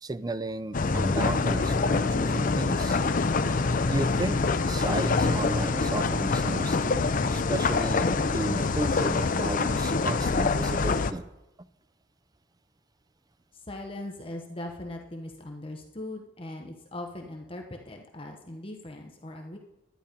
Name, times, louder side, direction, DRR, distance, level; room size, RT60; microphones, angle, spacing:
voice 1, 0.0-3.0 3.9-4.4 4.6-11.3 11.6-11.7, right 2 dB, 20° right, 14 dB, 0.4 m, -34 dB
sound 1, 0.7-11.1, left 3 dB, 45° left, 0.5 m, -25 dB
voice 2, 13.5-19.6, left 1 dB, 30° left, 3 dB, 1.0 m, -40 dB
11.5 x 10.0 x 5.2 m, 0.92 s
head